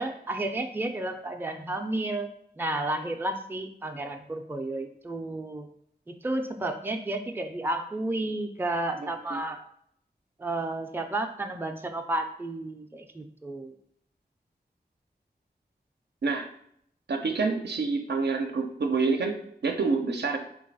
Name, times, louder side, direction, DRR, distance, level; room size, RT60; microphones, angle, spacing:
voice 1, 0.0-2.3 2.6-5.7 6.1-9.6 10.4-13.8, right 2 dB, 10° right, 5 dB, 0.4 m, -32 dB
voice 2, 17.1-20.4, right 4 dB, 80° right, 4 dB, 0.5 m, -27 dB
3.2 x 2.3 x 4.0 m, 0.69 s
wide cardioid pair, 50°, 17 cm